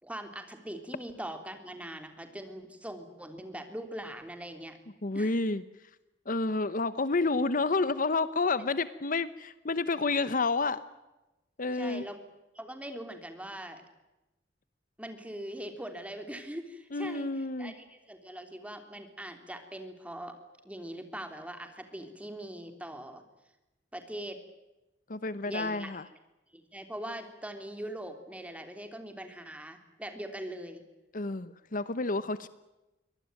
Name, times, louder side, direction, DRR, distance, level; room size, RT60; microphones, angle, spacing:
voice 1, 0.0-4.8 5.1-5.3 11.7-12.2 12.5-13.8 15.0-20.3 20.6-23.2 23.9-24.4 25.5-25.9 26.5-30.8, right 1 dB, 10° right, 7 dB, 3.3 m, -41 dB
voice 2, 5.0-5.6 6.3-10.8 11.6-12.1 16.9-17.7 25.1-26.0 31.1-32.5, left 3 dB, 50° left, 15 dB, 0.9 m, -29 dB
24.0 x 19.0 x 9.0 m, 1.0 s
head